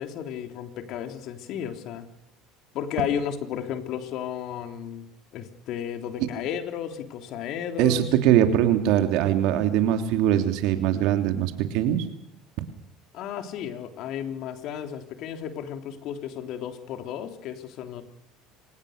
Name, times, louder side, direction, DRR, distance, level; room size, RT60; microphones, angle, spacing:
voice 1, 0.0-2.1 2.7-8.1 13.1-18.0, left 9 dB, 65° left, 6 dB, 3.4 m, -33 dB
voice 2, 7.8-12.0, right 11 dB, 75° right, 7 dB, 3.1 m, -22 dB
25.5 x 19.5 x 6.7 m, 0.82 s
supercardioid pair, 95°, 0 cm